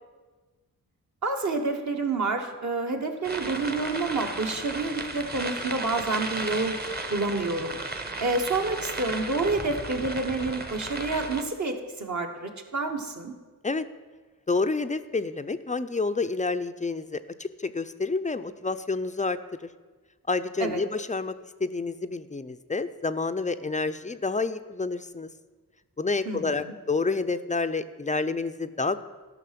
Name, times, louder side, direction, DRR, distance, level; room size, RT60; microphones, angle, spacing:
voice 1, 1.2-6.8 7.1-7.8 8.2-13.3 20.6-20.8 26.2-26.6, right 3 dB, 50° right, 3 dB, 1.3 m, -28 dB
sound 1, 3.2-11.4, right 2 dB, 25° right, 1.0 m, -35 dB
voice 2, 14.5-19.4 20.3-21.3 21.6-25.3 26.0-29.0, left 3 dB, 20° left, 11 dB, 0.4 m, -29 dB
13.0 x 5.9 x 5.9 m, 1.3 s
cardioid pair, 80°, 37 cm